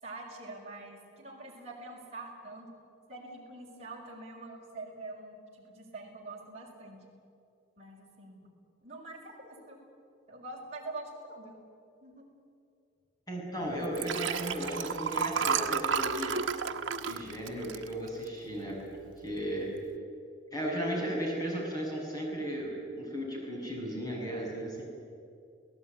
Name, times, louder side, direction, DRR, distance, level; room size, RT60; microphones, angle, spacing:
voice 1, 0.0-2.7 3.1-7.0 7.8-8.4 8.8-9.8 10.3-11.6 12.0-12.2, right 2 dB, 35° right, -2 dB, 5.6 m, -45 dB
voice 2, 13.3-16.4 17.0-18.8 19.2-19.7 20.5-24.8, equal, 20° left, -2 dB, 7.4 m, -35 dB
Liquid, 13.8-18.5 19.0-19.2 19.5-19.6, right 6 dB, 75° right, 1.2 m, -32 dB
29.5 x 18.0 x 9.8 m, 2.5 s
head